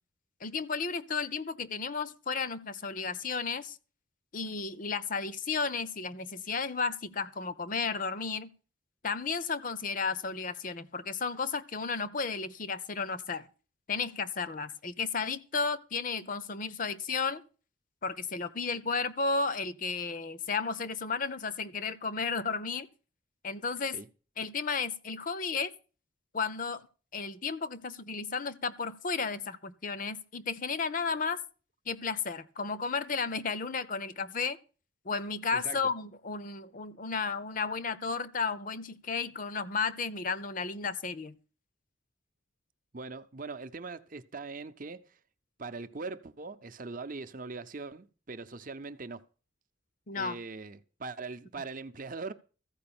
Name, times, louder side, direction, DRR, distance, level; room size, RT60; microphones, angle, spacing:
voice 1, 0.4-3.8 4.3-8.5 9.0-13.5 13.9-17.4 18.0-22.9 23.4-24.0 24.4-25.7 26.3-26.9 27.1-31.4 31.9-34.6 35.0-41.4 50.1-50.4, left 4 dB, 40° left, 0.7 m, -33 dB
voice 2, 42.9-45.2 45.6-49.2 50.1-52.3, right 4 dB, 40° right, 0.7 m, -41 dB
14.5 x 5.2 x 8.8 m
head